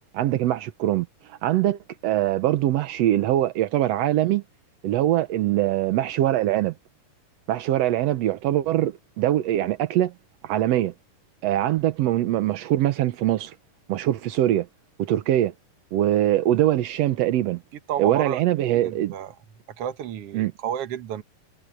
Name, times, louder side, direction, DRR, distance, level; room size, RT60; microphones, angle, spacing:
voice 1, 0.1-4.4 4.8-6.7 7.5-10.1 10.4-10.9 11.4-13.5 13.9-14.7 15.0-15.5 15.9-17.6 18.0-19.1 20.3-20.5, right 13 dB, 80° right, 1.5 m, -23 dB
voice 2, 17.9-18.4 18.7-19.3 19.7-21.2, right 10 dB, 60° right, 1.7 m, -31 dB
omnidirectional pair, 4.0 m